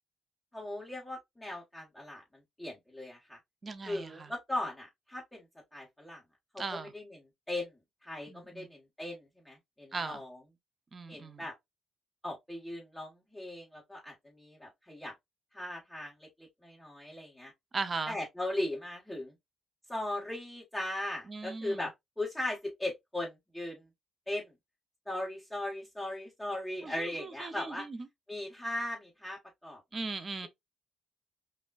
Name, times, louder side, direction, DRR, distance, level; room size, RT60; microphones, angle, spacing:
voice 1, 0.5-2.2 2.6-3.4 3.8-5.4 5.7-6.2 6.5-7.7 8.0-10.4 11.1-11.5 12.2-15.1 15.5-17.5 18.1-19.3 19.9-23.8 24.3-24.5 25.1-27.9 28.3-29.8, left 1 dB, 5° left, 1.4 m, -38 dB
voice 2, 3.6-4.1 6.6-6.9 8.3-8.7 9.9-10.2 10.9-11.5 17.7-18.2 21.3-21.8 26.8-28.0 29.9-30.5, right 4 dB, 35° right, 0.7 m, -38 dB
5.3 x 2.2 x 2.4 m
cardioid pair, 90°, 0 cm